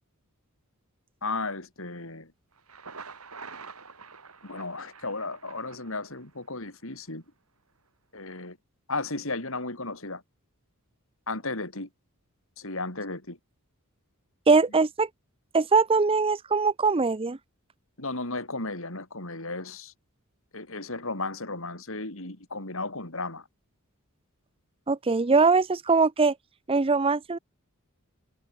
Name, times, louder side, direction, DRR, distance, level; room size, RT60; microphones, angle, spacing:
voice 1, 1.2-2.3 4.4-7.2 8.1-8.6 8.9-10.2 11.3-11.9 12.6-13.4 18.0-19.9 20.5-23.5, left 3 dB, 65° left, 5.3 m, -34 dB
Thunder, 2.5-6.5, right 5 dB, 80° right, 6.3 m, -46 dB
voice 2, 14.5-15.1 15.5-17.4 24.9-26.3 26.7-27.4, right 4 dB, 25° right, 0.6 m, -22 dB
head